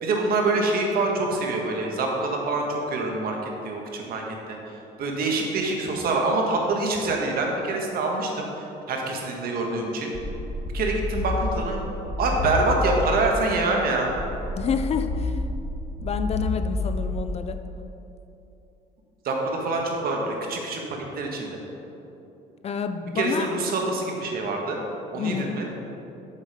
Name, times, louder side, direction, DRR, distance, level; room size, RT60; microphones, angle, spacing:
voice 1, 0.0-3.4 3.6-4.2 4.5-10.1 10.7-11.8 12.2-14.1 19.2-21.6 23.1-24.8 25.1-25.7, right 2 dB, 60° right, 0 dB, 1.5 m, -26 dB
sound 1, 10.1-13.4 14.1-17.4, left 2 dB, 55° left, 1.4 m, -29 dB
voice 2, 14.6-15.4 16.0-17.6 22.6-23.5 25.1-25.6, left 6 dB, 40° left, 8 dB, 0.5 m, -28 dB
7.3 x 7.2 x 4.9 m, 2.9 s
cardioid pair, 110°, 17 cm